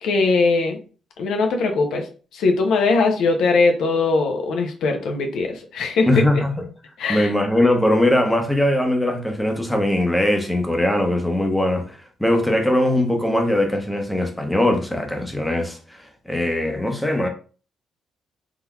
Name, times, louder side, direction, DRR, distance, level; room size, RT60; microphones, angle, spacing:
voice 1, 0.0-0.8 1.2-2.1 2.3-6.2 7.0-7.3, left 3 dB, 80° left, 0.6 m, -20 dB
voice 2, 6.1-6.5 7.1-17.3, left 1 dB, 5° left, 0.7 m, -20 dB
3.7 x 2.7 x 2.3 m
cardioid pair, 90°, 0 cm